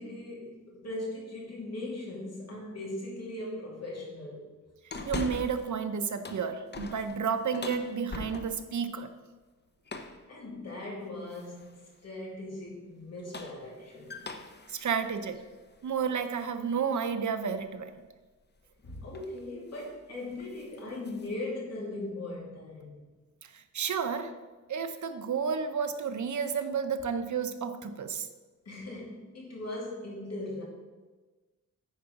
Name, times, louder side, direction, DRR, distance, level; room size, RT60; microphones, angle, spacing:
voice 1, 0.0-4.5 10.3-14.3 18.8-23.0 28.6-30.6, left 2 dB, 55° left, -3 dB, 2.6 m, -39 dB
sound 1, 4.9-5.7 6.1-8.8 9.9-10.3 11.3-11.8 13.0-16.5 16.9-17.0 18.6-18.8 19.1-19.4 19.7-20.0 20.3-21.3, left 3 dB, 35° left, 0.7 m, -42 dB
voice 2, 5.0-9.1 14.7-15.4 15.8-18.0 23.4-24.3 24.7-28.3, right 6 dB, 70° right, 9 dB, 0.8 m, -31 dB
9.4 x 4.8 x 5.8 m, 1.3 s
wide cardioid pair, 130°, 30 cm